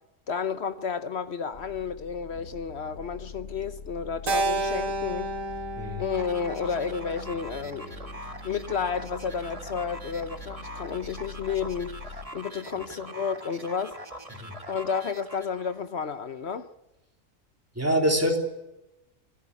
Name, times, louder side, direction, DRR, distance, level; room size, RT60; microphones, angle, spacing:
voice 1, 0.3-5.3 6.0-8.2 8.4-14.0 14.7-16.7, left 6 dB, 55° left, 1.1 m, -31 dB
sound 1, 1.5-12.3, left 3 dB, 85° left, 2.4 m, -44 dB
Keyboard (musical), 4.3-8.7, right 2 dB, 85° right, 2.3 m, -32 dB
sound 2, 6.1-15.9, right 1 dB, 25° right, 1.9 m, -43 dB
voice 2, 17.8-18.4, equal, 10° right, 3.3 m, -24 dB
24.5 x 15.0 x 8.4 m
omnidirectional pair, 1.3 m